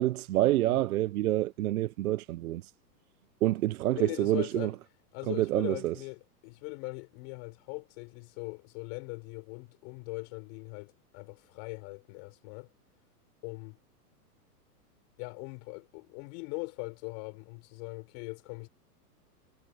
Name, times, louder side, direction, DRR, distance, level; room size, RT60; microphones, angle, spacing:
voice 1, 0.0-2.6 3.4-4.7 5.3-5.9, right 15 dB, 65° right, 0.7 m, -27 dB
voice 2, 3.9-4.8 5.1-12.7 13.4-13.8 15.2-18.7, left 35 dB, 35° left, 6.1 m, -41 dB
supercardioid pair, 160°, 48 cm